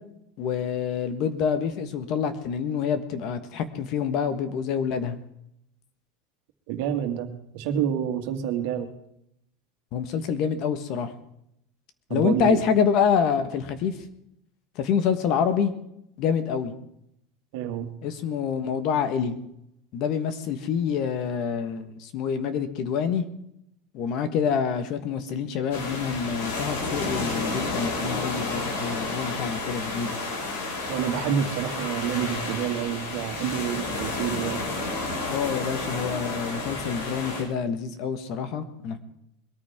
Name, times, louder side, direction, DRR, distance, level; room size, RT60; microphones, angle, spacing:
voice 1, 0.4-5.2 9.9-11.1 12.1-13.9 14.7-15.7 16.2-16.7 18.0-19.4 19.9-23.2 23.9-30.2 35.3-39.0, left 7 dB, 40° left, 10 dB, 1.4 m, -27 dB
voice 2, 6.7-7.3 7.5-8.9 12.1-12.6 17.5-17.9 30.9-34.6, right 9 dB, 60° right, 5 dB, 2.1 m, -28 dB
sound 1, 25.7-37.4, left 3 dB, 80° left, 5.8 m, -31 dB
21.5 x 14.0 x 3.7 m, 0.77 s
supercardioid pair, 170°, 0 cm